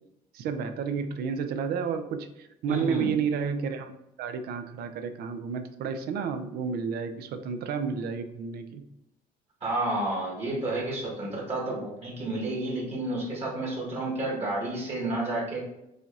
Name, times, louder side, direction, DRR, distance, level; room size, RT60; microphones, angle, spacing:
voice 1, 0.3-3.9 4.2-8.8, right 6 dB, 70° right, 8 dB, 0.5 m, -31 dB
voice 2, 2.7-3.1 9.6-15.6, right 2 dB, 35° right, -4 dB, 1.3 m, -30 dB
4.9 x 2.8 x 2.4 m, 0.87 s
cardioid pair, 110°, 17 cm